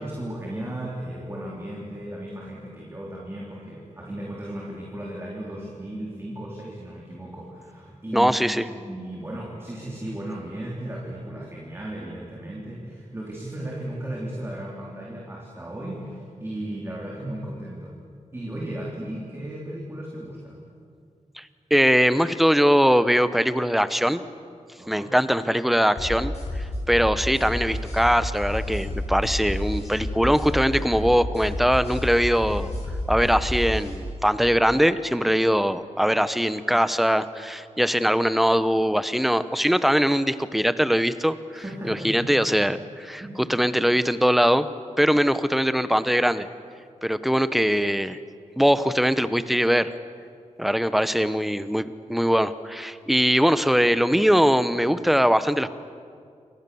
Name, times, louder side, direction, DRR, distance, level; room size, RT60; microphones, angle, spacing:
voice 1, 0.0-18.0 18.3-20.6 24.8-25.1 41.5-42.4 43.2-43.5, right 1 dB, 20° right, -3 dB, 3.9 m, -35 dB
voice 2, 8.1-8.6 21.4-24.2 24.9-32.7 33.1-43.2 43.5-44.7 45.0-46.5 47.0-48.2 48.6-49.9 50.6-55.7, equal, ahead, 13 dB, 0.9 m, -21 dB
sound 1, 26.0-34.0, left 1 dB, 55° left, 7.8 m, -30 dB
29.0 x 26.0 x 7.1 m, 2.3 s
wide cardioid pair, 165°, 13 cm